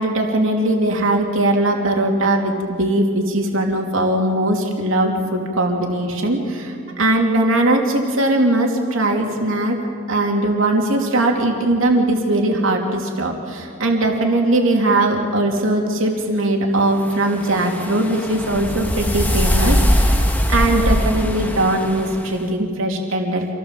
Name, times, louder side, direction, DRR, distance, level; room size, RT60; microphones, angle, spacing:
voice 1, 0.0-9.8 10.1-20.2 20.5-23.5, right 1 dB, 75° right, 1 dB, 2.9 m, -20 dB
sound 1, 17.0-22.3, equal, 10° left, 1.3 m, -21 dB
26.5 x 17.0 x 7.5 m, 2.4 s
head